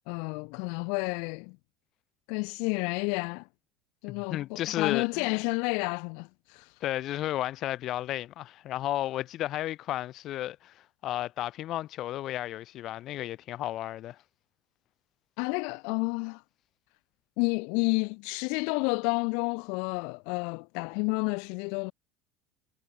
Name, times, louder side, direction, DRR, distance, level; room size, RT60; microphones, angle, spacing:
voice 1, 0.1-1.6 2.3-3.5 4.0-6.8 15.4-16.4 17.4-21.9, left 36 dB, 70° left, 3.7 m, -30 dB
voice 2, 4.1-5.3 6.8-14.2, left 14 dB, 55° left, 5.3 m, -33 dB
hypercardioid pair, 90°, 0 cm